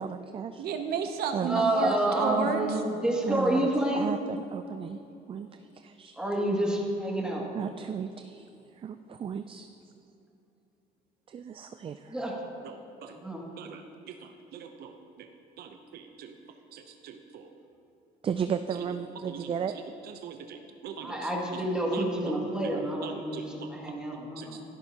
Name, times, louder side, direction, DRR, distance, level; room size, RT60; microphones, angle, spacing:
voice 1, 0.0-0.6 1.3-2.5 3.3-3.7 3.9-5.0 5.3-6.2 7.5-8.5 8.8-9.7 11.3-12.2 18.2-19.7 22.7-22.8, right 7 dB, 30° right, 9 dB, 0.4 m, -35 dB
voice 2, 0.6-2.7 12.6-13.1 13.6-15.3 15.6-16.4 16.7-17.5 19.3-19.8 20.2-21.3 21.9-22.4 23.0-23.7 24.4-24.5, right 7 dB, 70° right, 6 dB, 0.7 m, -36 dB
voice 3, 1.4-4.1 6.2-7.5 12.1-12.3 13.0-13.4 21.0-24.6, right 1 dB, 5° right, -3 dB, 2.4 m, -29 dB
14.5 x 12.5 x 2.9 m, 2.8 s
cardioid pair, 110°, 17 cm